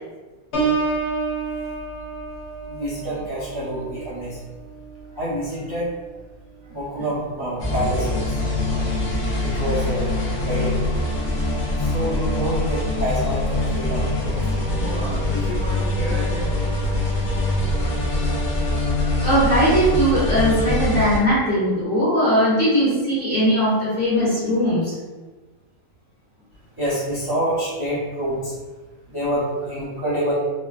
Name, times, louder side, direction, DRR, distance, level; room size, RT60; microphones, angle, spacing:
Piano, 0.5-6.1 6.6-7.0, right 4 dB, 55° left, 0.8 m, -29 dB
voice 1, 2.7-4.4 5.2-5.9 6.7-8.2 8.7-8.8 9.4-10.1 10.4-11.0 11.8-16.7 26.8-28.5 29.1-30.3, right 1 dB, 20° right, -11 dB, 0.6 m, -27 dB
sound 1, 7.6-21.2, left 1 dB, 70° left, 0.4 m, -23 dB
voice 2, 19.2-24.9, equal, 40° left, -10 dB, 1.1 m, -19 dB
3.3 x 2.1 x 2.3 m, 1.3 s
omnidirectional pair, 1.7 m